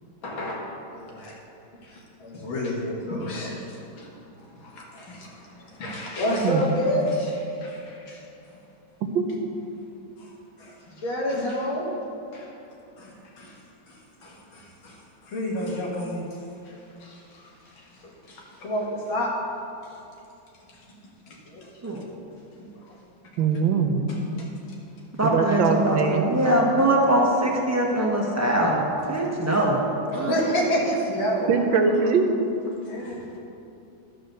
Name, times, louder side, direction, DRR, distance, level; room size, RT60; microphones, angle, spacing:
voice 1, 0.2-1.4 1.8-4.1 4.5-8.2 10.2-10.3 10.6-12.0 12.3-12.5 13.0-13.6 13.9-15.0 15.3-16.4 16.6-16.8 17.0-17.5 17.8-19.4 21.3-21.7 22.9-23.0 24.1-24.5 26.5-26.6 30.1-31.5 32.9-33.4, equal, 85° left, -2 dB, 2.4 m, -30 dB
voice 2, 6.4-6.7 9.1-9.2 23.4-24.0 25.2-26.3 31.5-32.3, right 5 dB, 80° right, 5 dB, 1.5 m, -22 dB
voice 3, 25.2-29.8 30.1-30.3, right 1 dB, 10° right, -3 dB, 1.0 m, -22 dB
12.0 x 5.0 x 6.7 m, 2.8 s
omnidirectional pair, 2.1 m